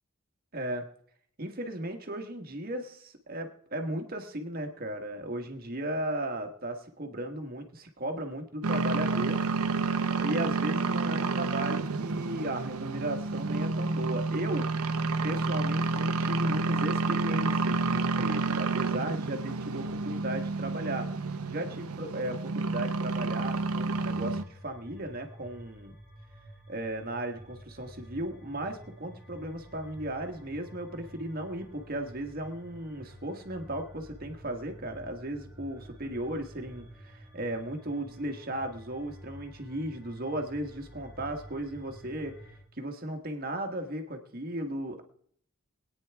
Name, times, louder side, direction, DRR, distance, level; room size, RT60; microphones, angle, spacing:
voice 1, 0.5-0.9 1.4-9.4 10.2-14.7 15.2-21.1 21.5-26.0 26.7-42.4 42.8-45.0, right 1 dB, 45° right, 5 dB, 1.4 m, -36 dB
sound 1, 8.6-24.4, right 3 dB, 85° right, 0.8 m, -30 dB
sound 2, 23.9-42.6, equal, 5° right, 7.5 m, -50 dB
21.5 x 9.3 x 3.4 m, 0.62 s
head